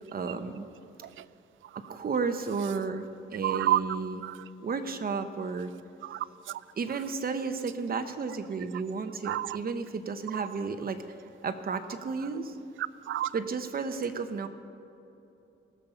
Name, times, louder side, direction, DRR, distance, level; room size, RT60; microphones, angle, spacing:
voice 1, 0.1-0.7 1.9-4.2 4.6-5.7 6.8-11.0 11.4-12.6 13.3-14.5, right 5 dB, 50° right, 0.9 m, -32 dB
voice 2, 3.4-3.8 4.2-4.4 6.0-6.6 9.2-9.6 10.3-10.4 12.8-13.3, right 14 dB, 80° right, 0.4 m, -30 dB
18.5 x 7.2 x 5.7 m
cardioid pair, 90°, 20 cm